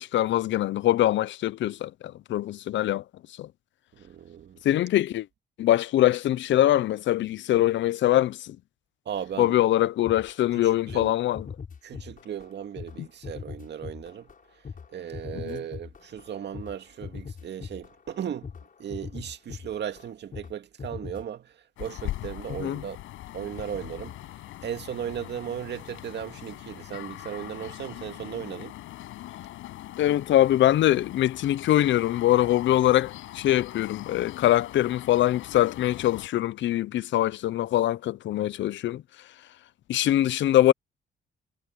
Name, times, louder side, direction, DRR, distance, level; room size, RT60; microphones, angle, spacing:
voice 1, 0.0-3.0 3.4-3.5 4.6-5.3 5.6-8.6 9.4-11.5 15.4-15.6 22.6-22.8 30.0-39.0 39.9-40.7, left 13 dB, 70° left, 0.7 m, -23 dB
voice 2, 3.9-4.6 9.1-9.5 10.5-11.1 11.8-14.3 14.9-18.5 18.8-23.0 23.3-24.2 24.6-28.8, right 9 dB, 60° right, 2.1 m, -36 dB
sound 1, 10.0-10.6 10.9-11.1 11.3-12.5 12.8-20.5 20.8-21.2, left 6 dB, 45° left, 7.0 m, -41 dB
sound 2, 21.8-36.3, left 15 dB, 90° left, 7.9 m, -41 dB
cardioid pair, 90°, 20 cm